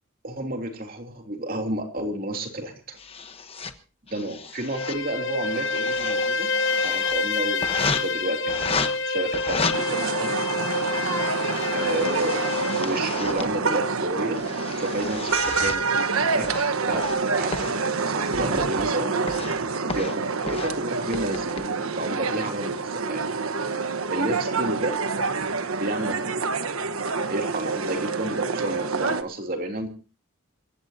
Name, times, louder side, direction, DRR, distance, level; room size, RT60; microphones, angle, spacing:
voice 1, 0.2-3.0 4.1-6.5 6.8-10.4 11.7-12.4 12.7-14.4 14.8-19.1 19.9-23.2 24.1-24.9 25.8-26.7 27.3-29.9, right 1 dB, 45° right, 3 dB, 3.1 m, -31 dB
sound 1, 3.0-3.7 4.1-5.0 5.3-7.1 7.6-8.0 8.5-8.9 9.3-9.7 10.5-13.5 14.1-15.8 16.4-17.2 17.5-17.7 18.3-18.9 19.3-19.6 19.9-20.1 20.5-20.7 21.1-21.6, left 4 dB, 25° left, 1.2 m, -33 dB
Bowed string instrument, 4.6-12.9, left 3 dB, 65° left, 1.0 m, -27 dB
sound 2, 9.7-29.2, right 4 dB, 85° right, 1.3 m, -27 dB
27.5 x 15.5 x 2.8 m, 0.36 s
head